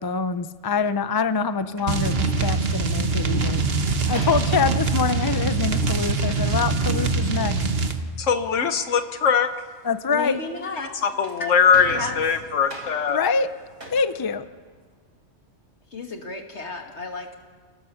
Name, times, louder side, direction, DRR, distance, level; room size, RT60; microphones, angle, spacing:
voice 1, 0.0-3.6 4.1-7.6 9.8-10.4 13.1-13.5 13.9-14.4, left 5 dB, 25° left, 12 dB, 0.6 m, -25 dB
sound 1, 1.8-2.8 4.1-6.6 11.0-15.1, right 1 dB, 85° right, 4.7 m, -42 dB
sound 2, 1.9-8.0, right 4 dB, 55° right, 1.5 m, -23 dB
voice 2, 8.2-9.5 11.0-13.2, left 6 dB, 85° left, 8 dB, 1.4 m, -21 dB
voice 3, 10.1-10.9 11.9-12.2 15.9-17.4, left 3 dB, 65° left, 3 dB, 2.6 m, -32 dB
28.0 x 18.5 x 7.1 m, 1.4 s
omnidirectional pair, 1.2 m